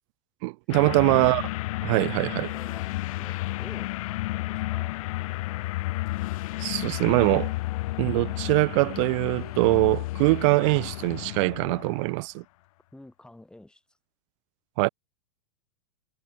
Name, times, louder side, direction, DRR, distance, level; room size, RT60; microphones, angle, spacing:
voice 1, 0.4-1.5 1.8-2.5 6.6-7.5 8.0-12.4 14.8-14.9, right 27 dB, 55° right, 0.7 m, -23 dB
sound 1, 0.7-12.1, left 19 dB, 65° left, 0.4 m, -32 dB
voice 2, 2.5-5.0 12.9-13.8, left 1 dB, 5° left, 5.4 m, -49 dB
sound 2, 4.5-11.5, left 10 dB, 80° left, 3.2 m, -49 dB
hypercardioid pair, 105°, 19 cm